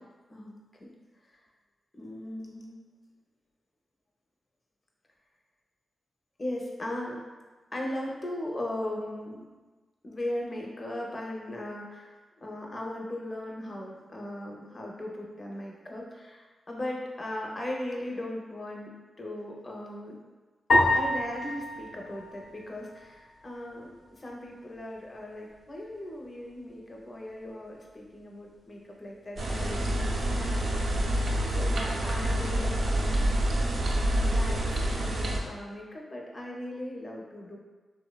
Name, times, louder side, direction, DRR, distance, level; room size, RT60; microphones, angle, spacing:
voice 1, 0.3-0.9 2.0-2.7 6.4-7.2 7.7-9.4 10.0-18.9 19.2-20.2 20.9-31.1 31.5-33.5 34.2-37.6, left 1 dB, 40° left, -1 dB, 0.5 m, -38 dB
sound 1, 20.7-23.2, left 2 dB, 85° left, 0.5 m, -27 dB
sound 2, 29.4-35.4, right 1 dB, 75° right, 0.4 m, -27 dB
2.9 x 2.0 x 2.2 m, 1.3 s
cardioid pair, 60°, 0 cm